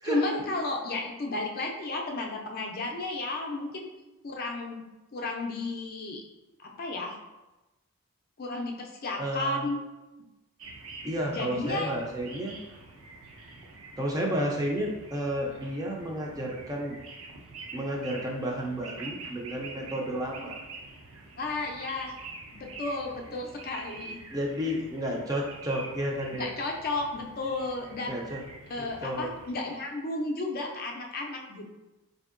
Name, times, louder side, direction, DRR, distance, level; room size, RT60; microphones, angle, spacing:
voice 1, 0.0-3.9 4.2-4.8 5.1-6.2 6.6-7.2 8.4-9.8 11.3-11.9 21.4-22.1 22.5-24.2 26.3-28.2 28.7-31.7, left 2 dB, 40° left, 1 dB, 0.4 m, -33 dB
voice 2, 9.2-9.7 11.0-12.6 14.0-17.0 17.7-20.6 24.3-26.5 28.1-28.4 28.8-29.3, equal, 15° right, -1 dB, 0.4 m, -31 dB
sound 1, 10.6-29.5, right 3 dB, 65° right, 0.5 m, -46 dB
4.3 x 2.7 x 2.5 m, 1.1 s
head